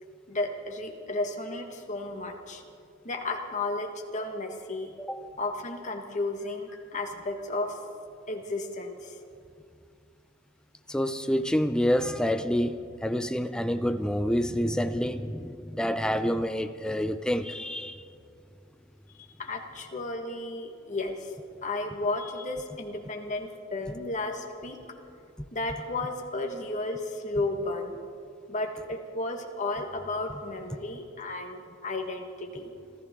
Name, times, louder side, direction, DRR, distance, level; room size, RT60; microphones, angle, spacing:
voice 1, 0.3-2.6 3.0-4.9 5.4-7.8 8.3-9.2 19.4-21.3 21.6-24.8 25.5-28.0 28.5-32.7, left 2 dB, 35° left, 2 dB, 1.6 m, -33 dB
voice 2, 5.0-5.3 10.9-18.1, equal, 5° left, 10 dB, 0.5 m, -28 dB
26.5 x 14.0 x 3.7 m, 2.4 s
head